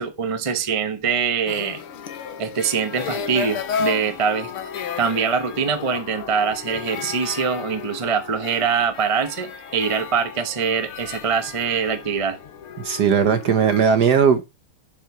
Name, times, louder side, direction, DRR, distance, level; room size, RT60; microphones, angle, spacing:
voice 1, 0.0-1.8 2.4-4.5 5.0-12.4, right 6 dB, 25° right, 0.8 m, -23 dB
sound 1, 1.5-13.8, left 7 dB, 90° left, 2.1 m, -33 dB
voice 2, 12.8-14.4, right 7 dB, 55° right, 1.3 m, -18 dB
7.6 x 7.5 x 5.0 m
omnidirectional pair, 2.4 m